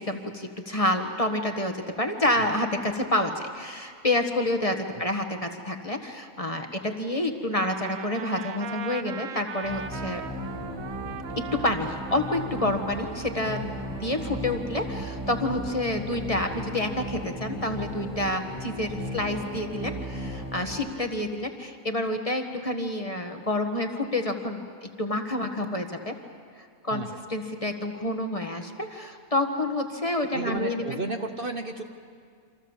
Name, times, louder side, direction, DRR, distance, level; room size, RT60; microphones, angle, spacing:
voice 1, 0.0-10.2 11.4-13.7 14.0-26.2 26.6-27.0 27.3-31.0, left 1 dB, 25° left, 4 dB, 1.5 m, -28 dB
Trumpet, 7.5-14.6, right 7 dB, 70° right, 1.3 m, -40 dB
sound 1, 9.6-20.9, equal, 15° right, 5.6 m, -36 dB
voice 2, 26.9-27.2 30.3-31.8, right 3 dB, 40° right, 5 dB, 1.3 m, -33 dB
28.5 x 26.0 x 7.3 m, 2.1 s
omnidirectional pair, 1.5 m